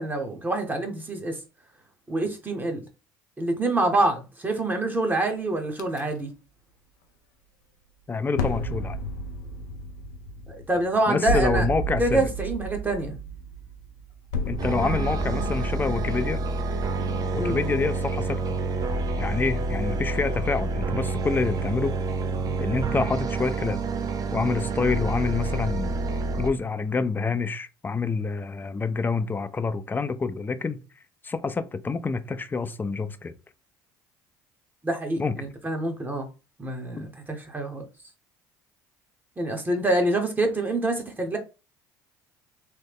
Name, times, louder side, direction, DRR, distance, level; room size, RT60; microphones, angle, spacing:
voice 1, 0.0-1.4 2.1-2.8 3.4-6.3 10.5-11.7 12.0-13.2 17.4-17.6 34.8-36.3 36.6-37.8 39.4-41.4, right 2 dB, 20° right, 0.9 m, -26 dB
sound 1, 5.8-6.0 8.3-16.0, right 1 dB, 90° left, 0.5 m, -32 dB
voice 2, 8.1-9.0 11.1-12.3 14.5-16.4 17.3-18.6 19.2-22.0 22.6-23.8 24.3-25.9 26.4-30.8 31.2-33.3 35.2-35.4, left 4 dB, 20° left, 0.4 m, -27 dB
sound 2, 14.6-26.5, right 3 dB, 40° right, 0.6 m, -28 dB
3.2 x 2.1 x 3.5 m
hypercardioid pair, 75°, 10 cm